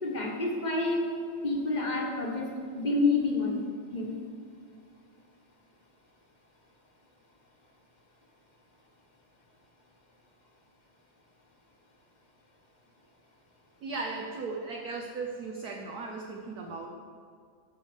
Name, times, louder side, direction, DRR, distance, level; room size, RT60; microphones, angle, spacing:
voice 1, 0.0-1.1 1.4-2.5 2.7-3.6 3.9-4.2, left 3 dB, 25° left, -1 dB, 1.2 m, -28 dB
voice 2, 13.8-16.9, right 4 dB, 60° right, 1 dB, 1.1 m, -37 dB
14.5 x 5.2 x 5.0 m, 2.2 s
omnidirectional pair, 2.2 m